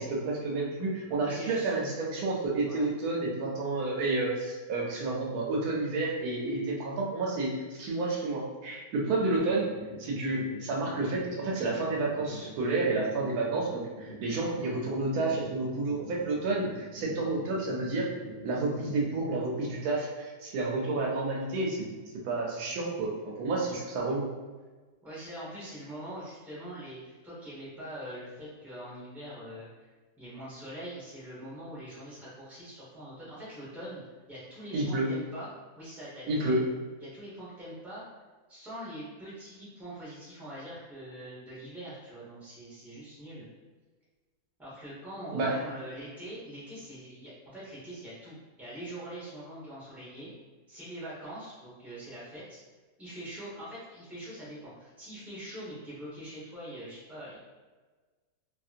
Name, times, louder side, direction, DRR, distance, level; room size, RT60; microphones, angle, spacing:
voice 1, 0.0-9.7 10.0-18.1 18.4-21.9 22.2-24.3 34.7-35.1 36.3-36.6 45.3-45.5, right 2 dB, 90° right, -2 dB, 1.2 m, -30 dB
voice 2, 1.2-1.7 2.6-2.9 25.0-29.7 30.2-34.0 34.3-35.5 35.8-36.6 37.0-38.0 38.5-43.5 44.6-50.3 50.7-52.6 53.0-57.4, right 1 dB, ahead, -9 dB, 0.8 m, -43 dB
sound 1, 9.4-19.4, right 1 dB, 55° left, 0.9 m, -46 dB
2.9 x 2.7 x 2.4 m, 1.3 s
omnidirectional pair, 1.6 m